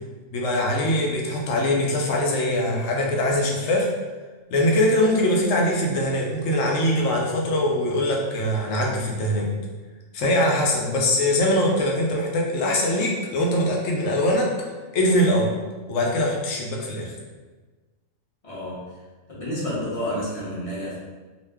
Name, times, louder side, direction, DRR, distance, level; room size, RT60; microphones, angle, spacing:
voice 1, 0.3-3.9 4.5-9.5 10.1-14.5 14.9-15.5 15.9-17.1, left 1 dB, 75° left, -2 dB, 0.9 m, -22 dB
voice 2, 18.4-19.0 19.3-21.0, equal, 30° left, -8 dB, 0.7 m, -30 dB
2.4 x 2.1 x 3.3 m, 1.3 s
omnidirectional pair, 1.3 m